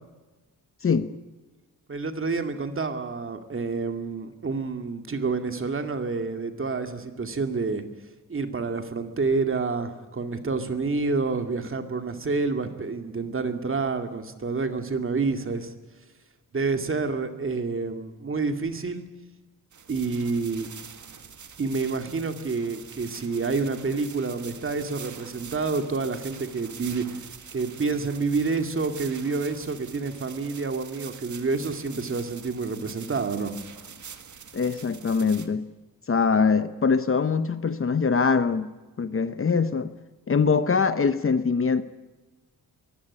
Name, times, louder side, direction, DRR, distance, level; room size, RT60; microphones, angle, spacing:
voice 1, 1.9-7.8 8.3-15.7 16.5-19.1 19.9-20.7 21.6-27.2 27.5-33.6, right 4 dB, 35° right, 2.3 m, -28 dB
sound 1, 19.7-35.5, right 7 dB, 55° right, 2.0 m, -45 dB
voice 2, 34.5-35.7 36.1-38.7 39.0-39.9 40.3-41.8, left 5 dB, 35° left, 0.9 m, -23 dB
23.0 x 16.0 x 9.8 m
wide cardioid pair, 150°, 35 cm